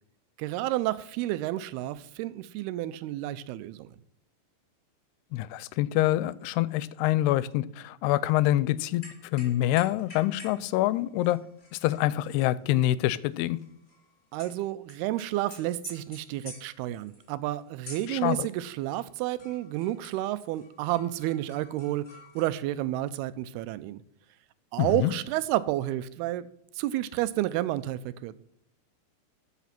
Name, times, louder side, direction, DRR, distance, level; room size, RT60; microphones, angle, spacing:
voice 1, 0.4-3.9 14.3-22.1 22.4-24.0 24.7-26.5 26.8-28.3, right 15 dB, 85° right, 15 dB, 2.6 m, -30 dB
voice 2, 5.3-9.0 9.3-11.4 11.7-13.6 18.1-18.5 24.8-25.1, left 15 dB, 90° left, 19 dB, 2.6 m, -26 dB
sound 1, 9.0-10.6 10.9-14.5 14.9-19.1 19.4-22.4, left 2 dB, 20° left, 3.4 m, -50 dB
14.0 x 5.9 x 5.8 m, 0.75 s
omnidirectional pair, 4.6 m